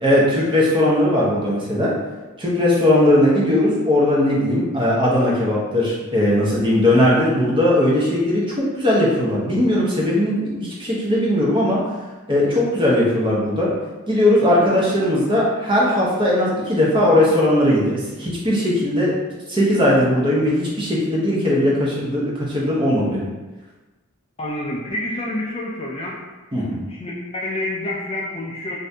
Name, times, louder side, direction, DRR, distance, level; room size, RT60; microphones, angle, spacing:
voice 1, 0.0-1.9 2.4-11.8 12.3-13.7 14.1-19.1 19.5-23.3 26.5-26.8, left 1 dB, 20° right, -5 dB, 0.6 m, -18 dB
voice 2, 24.4-26.2 26.5-26.6 26.9-28.8, left 1 dB, 25° left, -3 dB, 0.3 m, -28 dB
2.6 x 2.5 x 3.3 m, 1.2 s
head